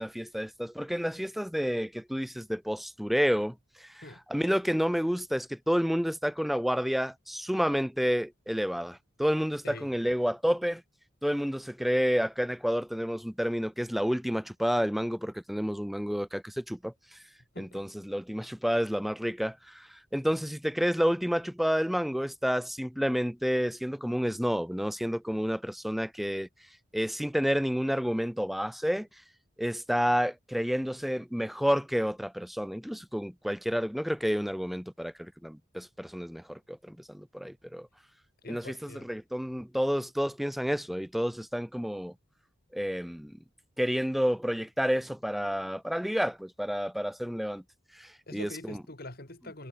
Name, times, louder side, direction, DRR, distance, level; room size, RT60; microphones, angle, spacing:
voice 1, 0.0-4.0 4.3-10.8 11.2-17.2 17.6-26.5 26.9-29.1 29.6-37.9 38.5-42.1 42.7-43.4 43.8-47.6 47.9-48.5, equal, ahead, 0.3 m, -30 dB
voice 2, 9.6-10.0 17.5-17.8 38.4-39.1 48.3-49.7, left 1 dB, 50° left, 3.3 m, -44 dB
head